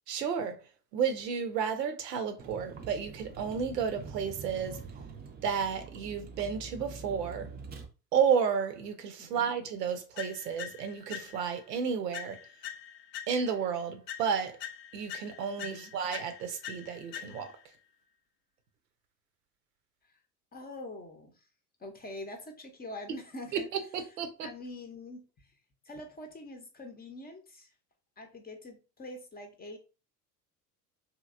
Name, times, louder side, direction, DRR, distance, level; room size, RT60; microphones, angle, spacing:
voice 1, 0.1-0.6 0.9-4.8 5.4-7.5 8.1-12.4 13.3-14.6 14.9-17.5 23.5-23.6 23.9-24.5, right 7 dB, 80° right, 0.7 m, -32 dB
Vehicle, 2.4-7.9, right 5 dB, 20° right, 0.5 m, -45 dB
voice 2, 9.2-9.5 15.6-15.9 20.0-20.1 20.5-21.5 21.8-23.7 24.4-25.5 25.8-27.7 28.2-29.8, left 1 dB, 20° left, 0.6 m, -45 dB
sound 1, 10.2-11.6 12.1-13.7 14.1-17.7, left 10 dB, 80° left, 0.5 m, -44 dB
2.9 x 2.7 x 2.4 m
hypercardioid pair, 70°, 48 cm